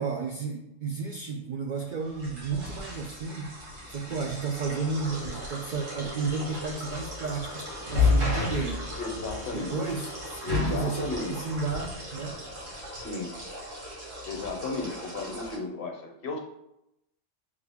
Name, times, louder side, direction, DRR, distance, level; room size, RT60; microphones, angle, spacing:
voice 1, 0.0-3.6 3.9-9.0 9.5-12.4, right 4 dB, 65° right, 1 dB, 0.4 m, -32 dB
sound 1, 2.0-15.6, left 3 dB, 85° right, 2.0 m, -33 dB
sound 2, 2.8-12.8, equal, 5° right, 0.5 m, -52 dB
voice 2, 9.0-10.0 10.4-11.5 12.9-13.3 14.3-16.4, left 3 dB, 50° left, 2 dB, 0.9 m, -34 dB
6.5 x 2.3 x 3.4 m, 0.84 s
omnidirectional pair, 1.3 m